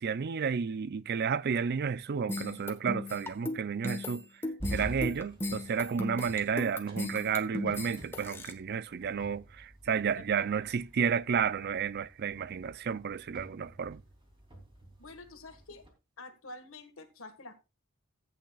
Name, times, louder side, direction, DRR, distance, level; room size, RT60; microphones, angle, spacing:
voice 1, 0.0-4.2 4.7-14.0, right 6 dB, 50° right, 0.4 m, -31 dB
sound 1, 2.3-8.5, left 1 dB, 10° left, 1.2 m, -37 dB
sound 2, 4.6-15.9, equal, 25° right, 3.0 m, -47 dB
voice 2, 15.0-15.8 16.2-17.6, left 2 dB, 65° left, 1.7 m, -48 dB
15.0 x 8.7 x 2.4 m
head